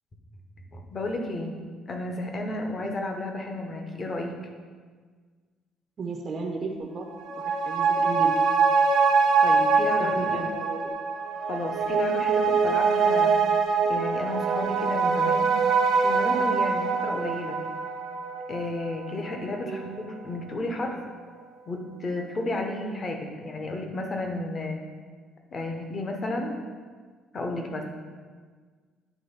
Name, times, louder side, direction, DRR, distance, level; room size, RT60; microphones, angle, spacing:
voice 1, 0.7-1.5 1.9-4.4 9.4-10.4 11.5-13.4 13.8-15.5 16.0-17.6 18.5-21.0 21.7-24.8 25.5-26.6 27.3-27.8, left 2 dB, 25° left, 3 dB, 0.8 m, -32 dB
voice 2, 6.0-7.1 7.4-8.4 10.0-10.9 19.6-19.9, right 3 dB, 30° right, 1 dB, 0.6 m, -34 dB
sound 1, 7.1-20.0 20.3-20.4, right 5 dB, 85° right, 0.8 m, -24 dB
9.3 x 3.7 x 5.6 m, 1.5 s
cardioid pair, 175°, 0 cm